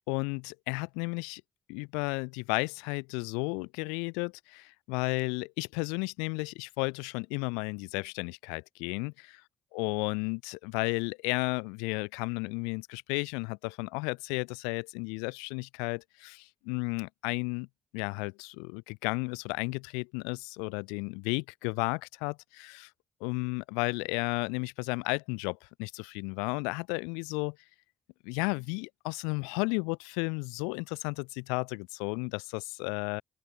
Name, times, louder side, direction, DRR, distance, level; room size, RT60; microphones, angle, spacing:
voice 1, 0.1-1.4 1.7-9.4 9.7-17.7 17.9-22.9 23.2-27.6 28.2-33.2, left 35 dB, 90° left, 1.1 m, -33 dB
open air
hypercardioid pair, 40°, 0 cm